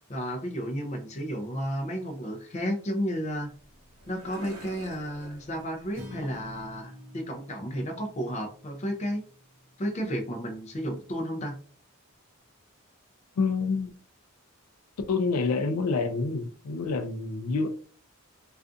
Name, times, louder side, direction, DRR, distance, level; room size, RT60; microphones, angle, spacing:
voice 1, 0.0-3.5 4.1-9.2 9.8-11.6, equal, 30° left, 0.4 m, -32 dB
sound 1, 3.3-6.8, right 1 dB, 75° right, 0.9 m, -49 dB
Acoustic guitar, 5.9-10.2, left 1 dB, 40° right, 0.7 m, -47 dB
voice 2, 13.4-13.9 15.1-17.7, left 4 dB, 90° left, 0.4 m, -27 dB
2.4 x 2.4 x 2.4 m
head